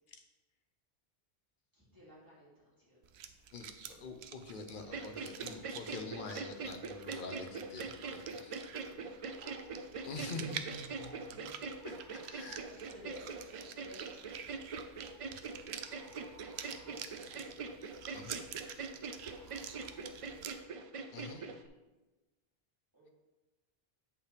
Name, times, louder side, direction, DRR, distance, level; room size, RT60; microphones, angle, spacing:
voice 1, 1.7-3.0 3.8-4.0 7.9-8.2 8.6-11.5 12.1-14.6 15.9-17.8 19.2-20.5 21.3-21.6 22.9-23.1, equal, 20° right, -8 dB, 2.6 m, -57 dB
sound 1, 3.0-20.5, right 8 dB, 90° right, 0.8 m, -48 dB
voice 2, 3.5-8.7 10.0-11.5 11.8-12.6 18.1-18.4 21.1-21.6, left 3 dB, 55° left, 5 dB, 1.0 m, -46 dB
sound 2, 4.8-21.7, right 4 dB, 55° right, 0.4 m, -43 dB
Bird, 11.8-12.7 15.0-15.2 15.8-17.2 19.2-20.0, left 1 dB, ahead, 0.9 m, -62 dB
8.5 x 5.6 x 3.3 m, 1.1 s
omnidirectional pair, 1.0 m